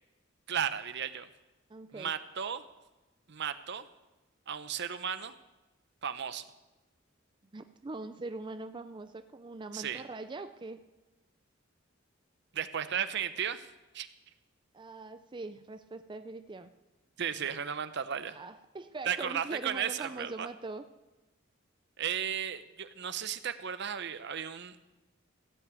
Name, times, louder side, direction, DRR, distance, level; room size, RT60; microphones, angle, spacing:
voice 1, 0.5-1.3 1.9-2.6 3.3-3.9 4.5-5.3 6.0-6.4 9.7-10.0 12.5-13.7 13.9-14.1 17.2-18.4 19.0-20.5 22.0-24.8, right 8 dB, 60° right, 12 dB, 0.7 m, -34 dB
voice 2, 1.7-2.1 7.5-10.8 14.7-16.7 18.3-20.8, right 3 dB, 25° right, 9 dB, 0.4 m, -42 dB
15.5 x 5.9 x 8.2 m, 1.1 s
head